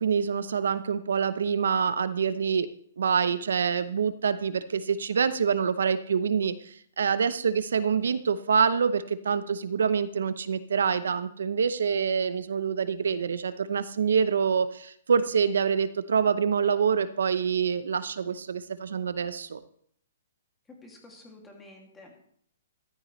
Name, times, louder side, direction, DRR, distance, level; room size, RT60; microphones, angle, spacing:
voice 1, 0.0-2.7 3.0-19.6, right 6 dB, 85° right, 13 dB, 0.8 m, -26 dB
voice 2, 20.7-22.2, left 2 dB, 10° left, 0 dB, 2.4 m, -50 dB
14.0 x 13.0 x 3.2 m, 0.65 s
hypercardioid pair, 165°, 0 cm